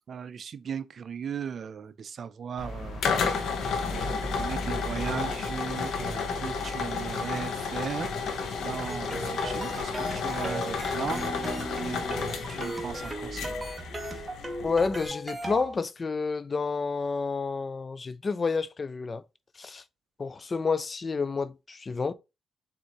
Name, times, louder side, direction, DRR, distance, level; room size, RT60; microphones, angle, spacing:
voice 1, 0.1-3.1 3.6-8.1 8.6-13.7, right 7 dB, 50° right, 0.4 m, -37 dB
sound 1, 2.6-15.1, left 4 dB, 65° left, 0.9 m, -32 dB
sound 2, 8.9-15.8, right 1 dB, 15° right, 1.1 m, -37 dB
voice 2, 14.6-19.2 19.6-19.8 20.2-22.1, left 4 dB, 35° left, 0.3 m, -29 dB
4.2 x 3.7 x 2.9 m
cardioid pair, 90°, 0 cm